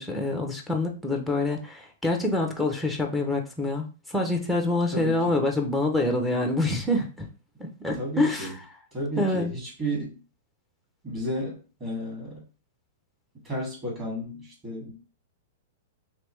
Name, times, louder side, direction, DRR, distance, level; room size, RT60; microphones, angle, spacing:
voice 1, 0.0-7.3 7.6-8.6 9.2-9.5, left 2 dB, ahead, 1 dB, 0.5 m, -26 dB
voice 2, 4.9-5.4 8.0-8.5 8.9-10.2 11.0-12.4 13.4-14.9, right 1 dB, 25° right, -3 dB, 1.8 m, -33 dB
3.3 x 3.0 x 3.1 m, 0.34 s
hypercardioid pair, 155°, 0 cm